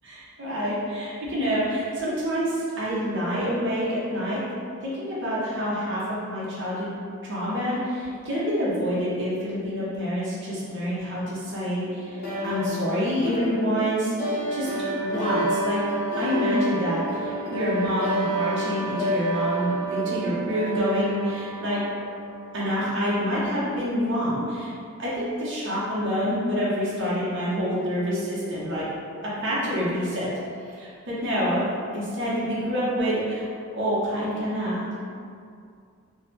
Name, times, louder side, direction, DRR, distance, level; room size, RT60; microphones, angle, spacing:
voice 1, 0.0-4.4 4.8-6.0 6.3-6.9 7.2-14.7 15.0-15.8 16.2-21.8 22.5-24.7 25.0-28.9 29.2-30.3 30.7-31.6 31.9-35.0, equal, 55° right, -8 dB, 0.8 m, -27 dB
sound 1, 12.1-22.6, right 1 dB, 40° left, 0.7 m, -29 dB
3.2 x 2.1 x 2.8 m, 2.3 s
head